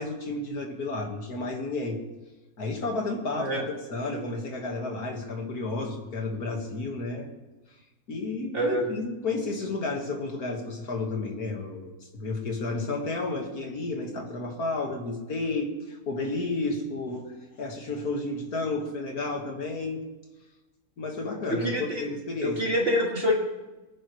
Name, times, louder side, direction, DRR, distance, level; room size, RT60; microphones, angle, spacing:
voice 1, 0.0-2.0 2.6-7.3 8.1-20.0 21.0-22.6, left 3 dB, 70° left, 2 dB, 2.3 m, -32 dB
voice 2, 21.5-22.1 22.4-23.3, equal, 35° right, -2 dB, 2.7 m, -26 dB
23.0 x 10.0 x 3.2 m, 1.1 s
omnidirectional pair, 1.7 m